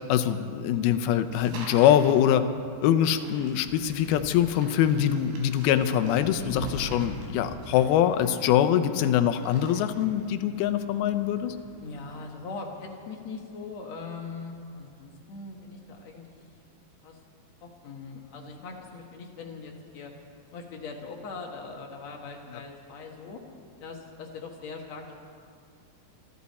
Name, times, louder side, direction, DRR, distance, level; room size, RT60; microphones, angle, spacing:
voice 1, 0.1-2.4 2.8-11.6, left 10 dB, 80° left, 10 dB, 2.6 m, -23 dB
sound 1, 1.3-2.3 3.2-9.0 9.3-10.2, right 3 dB, 90° right, 4.5 m, -48 dB
Wind, 2.3-12.3, equal, 25° left, 2.4 m, -44 dB
voice 2, 11.8-16.3 17.0-17.2 17.6-20.1 20.5-23.4 23.8-25.1, left 4 dB, 55° left, 1 dB, 2.3 m, -41 dB
25.5 x 12.5 x 4.2 m, 2.3 s
omnidirectional pair, 4.4 m